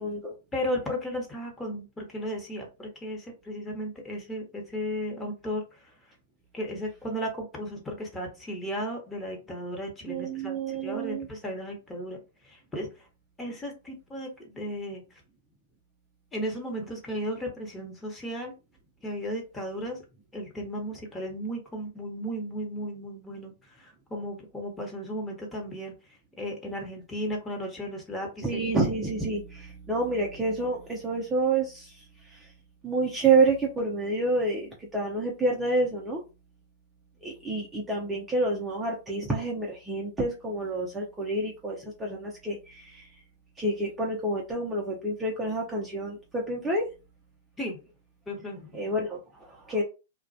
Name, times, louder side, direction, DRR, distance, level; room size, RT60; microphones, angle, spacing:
voice 1, 0.0-0.3 10.1-11.3 28.4-32.5 32.8-36.2 37.2-43.1 43.6-46.9 48.7-49.8, right 2 dB, 10° right, -2 dB, 0.5 m, -28 dB
voice 2, 0.5-5.9 6.5-12.2 12.4-13.1 13.4-15.0 16.3-18.5 19.0-20.0 20.3-25.9 26.4-28.6 47.6-47.8 48.3-48.7, equal, 15° left, 0 dB, 0.9 m, -35 dB
2.3 x 2.1 x 2.6 m, 0.30 s
hypercardioid pair, 120°, 0 cm